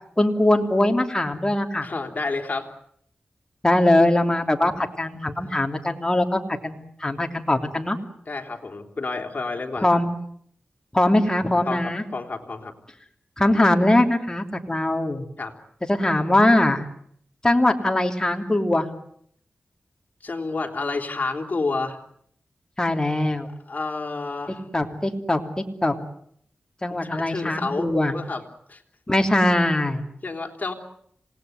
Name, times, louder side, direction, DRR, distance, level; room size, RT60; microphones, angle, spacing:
voice 1, 0.2-1.9 3.6-8.0 9.8-10.1 10.9-12.0 13.4-15.3 15.9-16.8 17.4-18.9 22.8-23.5 24.7-25.9 26.8-28.1 29.1-30.0, left 1 dB, 20° left, 4 dB, 3.1 m, -21 dB
voice 2, 1.8-2.7 5.4-5.5 8.3-10.0 11.7-12.7 15.4-15.5 20.2-22.0 23.7-24.6 27.0-28.4 28.7-28.8 30.2-30.7, left 3 dB, 45° left, 3 dB, 3.9 m, -30 dB
27.5 x 19.0 x 9.5 m, 0.68 s
wide cardioid pair, 70°, 4 cm